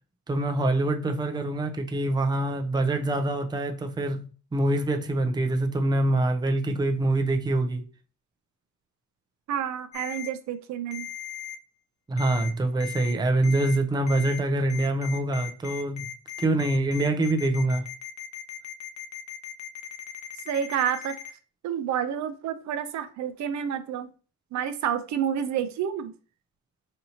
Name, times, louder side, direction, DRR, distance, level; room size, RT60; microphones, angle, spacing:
voice 1, 0.3-7.9 12.1-16.1 16.4-17.9, right 2 dB, 15° right, 0.5 m, -25 dB
voice 2, 9.5-11.1 20.5-21.2 21.6-24.1 24.5-26.1, right 9 dB, 65° right, 0.5 m, -29 dB
Ringtone, 9.9-10.3 10.9-11.6 12.2-12.5 12.8-13.1 13.4-13.8 14.1-14.4 14.7-21.3, left 10 dB, 65° left, 0.7 m, -38 dB
4.2 x 2.7 x 2.8 m
cardioid pair, 90°, 30 cm